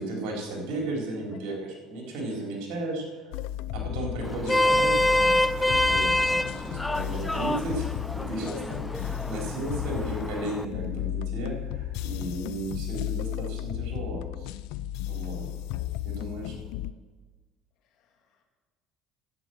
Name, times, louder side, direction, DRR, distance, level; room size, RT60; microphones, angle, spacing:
voice 1, 0.0-3.4 3.7-7.9 8.1-8.8 9.3-14.6 15.1-15.5 16.0-16.6, right 2 dB, 70° right, 0 dB, 4.0 m, -34 dB
sound 1, 3.3-16.9, left 13 dB, 80° left, 0.4 m, -34 dB
Vehicle horn car horn honking, 4.2-10.6, left 1 dB, 10° left, 0.4 m, -26 dB
voice 2, 8.4-8.9 16.1-16.8 17.8-18.4, left 6 dB, 65° left, 3 dB, 2.4 m, -52 dB
11.0 x 8.9 x 7.9 m, 1.3 s
supercardioid pair, 105°, 0 cm